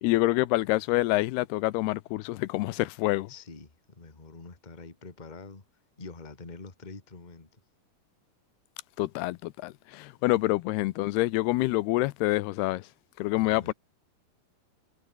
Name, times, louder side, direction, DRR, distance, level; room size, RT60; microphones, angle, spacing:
voice 1, 0.0-3.3 9.0-12.9 13.2-13.7, left 19 dB, 85° left, 2.7 m, -27 dB
voice 2, 3.3-5.6 6.0-7.6 13.5-13.7, left 3 dB, 15° left, 1.7 m, -45 dB
omnidirectional pair, 4.5 m